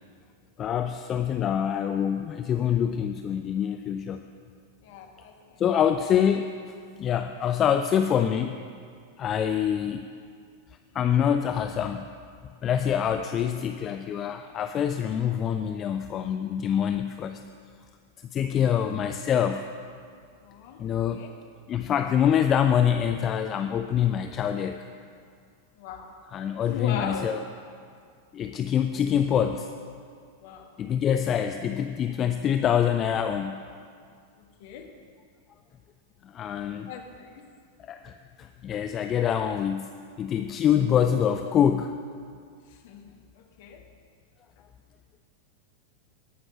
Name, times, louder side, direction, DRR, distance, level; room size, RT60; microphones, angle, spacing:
voice 1, 0.6-4.2 5.6-6.5 7.0-8.6 9.2-10.1 10.9-12.0 12.6-17.4 18.3-19.7 20.8-21.2 21.7-24.9 26.3-27.4 28.3-29.7 30.8-33.6 36.2-36.9 37.8-39.9 40.2-41.9, left 9 dB, 30° left, 7 dB, 0.4 m, -25 dB
voice 2, 4.8-5.6 20.4-20.8 21.1-21.3 25.8-26.1 26.6-27.3 28.9-29.1 30.4-30.8 34.6-34.8 36.8-37.4 42.7-43.8, left 6 dB, 50° left, 2 dB, 1.4 m, -39 dB
15.5 x 6.0 x 6.2 m, 2.2 s
figure-of-eight pair, 90°, 0 cm